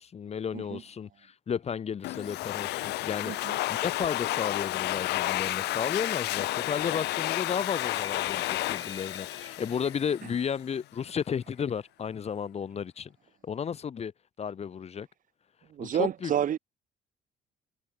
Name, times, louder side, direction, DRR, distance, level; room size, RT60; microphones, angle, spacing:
voice 1, 0.0-3.3 3.7-13.1 13.4-14.1 14.4-15.1 15.8-16.3, left 7 dB, 40° left, 1.8 m, -33 dB
Domestic sounds home sounds, 2.0-10.5, left 18 dB, 80° left, 1.0 m, -31 dB
voice 2, 3.2-3.6 15.7-16.6, right 10 dB, 50° right, 2.2 m, -30 dB
sound 1, 4.9-10.4, left 3 dB, 20° left, 5.6 m, -49 dB
cardioid pair, 110°, 17 cm